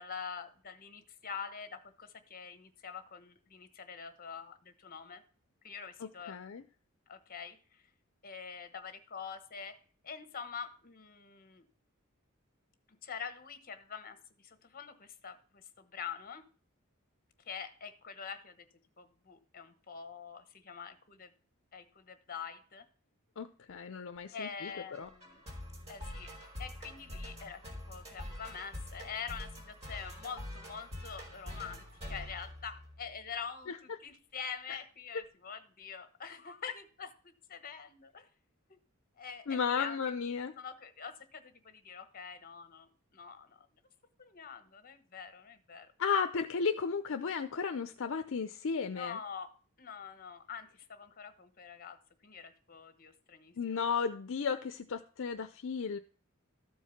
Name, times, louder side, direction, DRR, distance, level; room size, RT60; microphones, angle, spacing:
voice 1, 0.0-5.2 5.6-6.4 7.1-7.8 8.2-9.8 10.0-11.6 13.0-16.4 17.5-18.7 19.0-21.3 21.7-22.9 24.3-25.4 25.9-26.3 26.6-38.3 38.7-38.8 39.2-43.7 44.2-45.9 48.9-49.5 49.8-52.0 52.2-53.8, left 6 dB, 45° left, 11 dB, 1.1 m, -45 dB
voice 2, 6.0-6.6 23.4-24.7 25.0-25.1 33.7-33.8 34.7-34.8 39.5-40.5 46.0-49.2 53.6-56.0, left 6 dB, 65° left, 8 dB, 0.5 m, -34 dB
sound 1, 24.7-33.2, left 1 dB, 30° right, 3.2 m, -45 dB
13.5 x 4.7 x 5.7 m, 0.42 s
head